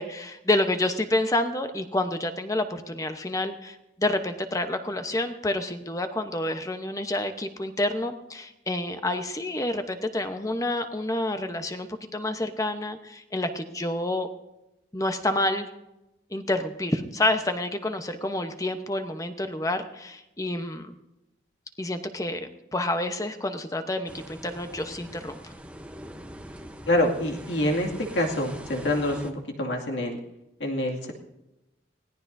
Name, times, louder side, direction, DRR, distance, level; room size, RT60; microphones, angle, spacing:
voice 1, 0.0-14.3 14.9-15.7 16.3-20.9 21.8-25.5, left 1 dB, 20° left, 7 dB, 0.9 m, -28 dB
sound 1, 24.1-29.3, equal, 5° right, 0.8 m, -43 dB
voice 2, 26.9-30.2 30.6-31.1, left 1 dB, 75° left, 1 dB, 2.3 m, -26 dB
24.0 x 17.0 x 2.7 m, 0.94 s
head